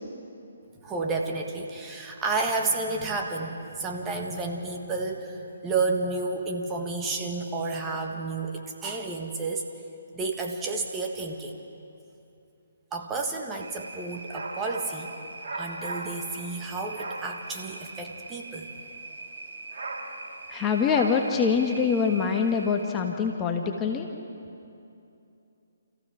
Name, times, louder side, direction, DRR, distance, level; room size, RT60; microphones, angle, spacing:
voice 1, 0.8-9.7 10.1-11.5 12.9-15.2 15.6-18.7, right 3 dB, 15° right, 1 dB, 1.8 m, -31 dB
sound 1, 13.6-23.0, right 3 dB, 60° right, 2.6 m, -39 dB
voice 2, 20.5-24.1, left 6 dB, 20° left, 2 dB, 1.3 m, -24 dB
29.5 x 15.0 x 6.2 m, 2.7 s
figure-of-eight pair, 145°, 0 cm